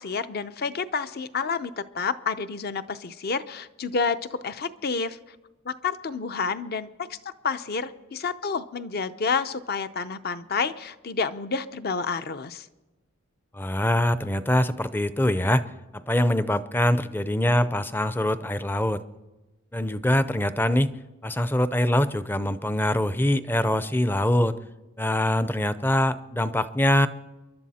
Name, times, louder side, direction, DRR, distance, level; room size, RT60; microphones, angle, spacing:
voice 1, 0.0-5.2 5.7-7.2 7.4-12.7, left 5 dB, 50° left, 12 dB, 0.6 m, -29 dB
voice 2, 13.5-15.7 16.1-19.0 19.7-20.9 21.2-24.6 25.0-27.1, left 1 dB, 10° left, 14 dB, 0.5 m, -23 dB
29.0 x 11.5 x 4.2 m, 1.1 s
head